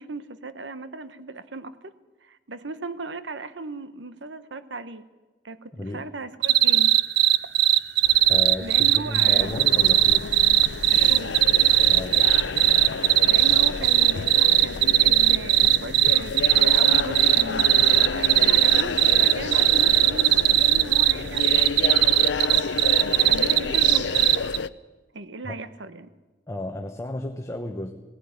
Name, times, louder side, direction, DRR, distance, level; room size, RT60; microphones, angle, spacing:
voice 1, 0.0-1.9 2.2-5.0 5.4-6.9 8.6-9.5 11.0-11.4 13.3-22.6 23.0-24.2 25.1-26.1, right 3 dB, 90° right, 13 dB, 1.0 m, -37 dB
voice 2, 5.7-6.1 8.3-10.3 11.8-12.4 25.4-25.6 26.5-28.0, left 1 dB, 15° left, 4 dB, 1.1 m, -33 dB
sound 1, 6.4-24.6, right 14 dB, 65° right, 0.6 m, -18 dB
sound 2, 8.0-14.0, left 1 dB, 45° left, 2.3 m, -46 dB
sound 3, 9.4-24.7, left 5 dB, 75° left, 0.6 m, -30 dB
18.0 x 17.0 x 9.8 m, 1.2 s
head